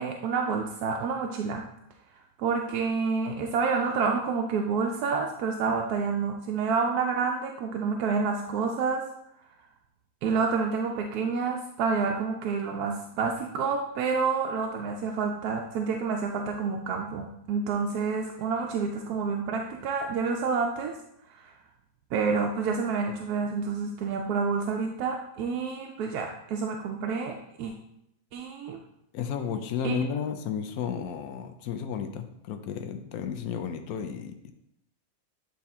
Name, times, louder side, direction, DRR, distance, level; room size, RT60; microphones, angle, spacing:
voice 1, 0.0-1.6 2.4-9.1 10.2-20.9 21.3-21.5 22.1-27.7 28.3-28.8 29.8-30.0, right 5 dB, 90° right, 2 dB, 1.1 m, -28 dB
voice 2, 29.1-34.5, left 7 dB, 80° left, 6 dB, 1.1 m, -33 dB
8.6 x 3.5 x 4.2 m, 0.80 s
omnidirectional pair, 1.6 m